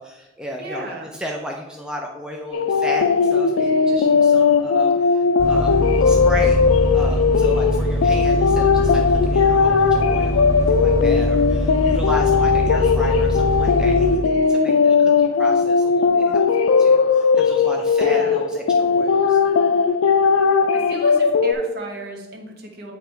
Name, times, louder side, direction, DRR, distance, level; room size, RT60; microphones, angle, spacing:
voice 1, 0.0-5.7 6.0-6.6 6.9-19.4, left 1 dB, 5° right, 0 dB, 0.4 m, -34 dB
voice 2, 0.6-1.1 18.0-18.4 20.7-22.9, right 2 dB, 50° right, 1 dB, 1.1 m, -34 dB
sound 1, 2.5-21.5, left 5 dB, 90° left, 0.4 m, -18 dB
sound 2, 5.4-14.2, equal, 20° left, 1.6 m, -23 dB
8.6 x 3.0 x 4.4 m, 1.1 s
head